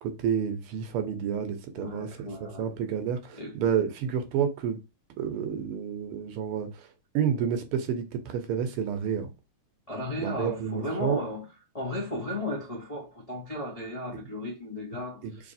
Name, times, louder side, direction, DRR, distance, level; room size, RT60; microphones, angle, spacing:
voice 1, 0.0-4.8 5.2-6.9 7.1-9.3 10.2-11.2 14.1-14.2 15.2-15.5, right 8 dB, 85° right, 1.7 m, -30 dB
voice 2, 1.8-2.6 3.3-3.5 9.9-11.5 11.7-15.5, left 1 dB, 45° left, 0.4 m, -35 dB
4.0 x 3.2 x 2.6 m
omnidirectional pair, 2.4 m